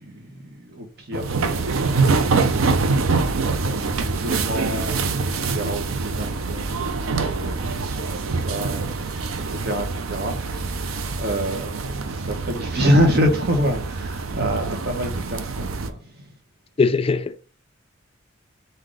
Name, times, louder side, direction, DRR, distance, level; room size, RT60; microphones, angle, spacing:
voice 1, 0.0-2.9 3.6-16.3, equal, 50° right, 1.1 m, -27 dB
sound 1, 1.1-15.9, right 4 dB, 80° right, 0.5 m, -25 dB
voice 2, 16.8-17.4, left 4 dB, 25° left, 0.3 m, -20 dB
3.9 x 2.7 x 4.8 m
head